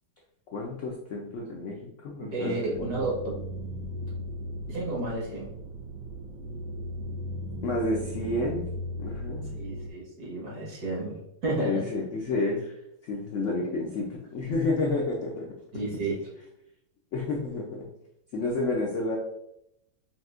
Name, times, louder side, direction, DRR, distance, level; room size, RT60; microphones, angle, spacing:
voice 1, 0.5-2.6 7.6-8.6 9.0-9.5 11.6-12.7 13.0-15.5 17.1-17.8 18.3-19.2, left 2 dB, 75° left, -1 dB, 0.6 m, -30 dB
voice 2, 2.2-3.1 4.7-5.5 9.6-11.8 15.7-16.3, right 2 dB, 60° right, -4 dB, 1.7 m, -31 dB
sound 1, 2.7-9.9, equal, 85° right, 1.4 m, -37 dB
5.7 x 2.6 x 2.4 m, 0.80 s
omnidirectional pair, 2.0 m